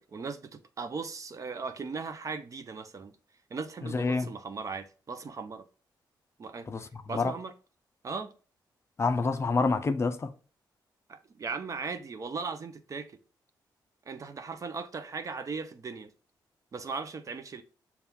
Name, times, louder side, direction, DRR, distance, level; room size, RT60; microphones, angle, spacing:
voice 1, 0.0-3.1 3.5-5.6 6.4-6.7 7.1-7.5 8.0-8.3 11.1-13.1 14.1-16.1 16.7-17.6, right 4 dB, 45° right, 0.5 m, -38 dB
voice 2, 3.8-4.3 6.7-6.9 7.1-7.3 9.0-10.3, left 4 dB, 35° left, 0.4 m, -27 dB
6.9 x 2.3 x 2.2 m
cardioid pair, 85°, 8 cm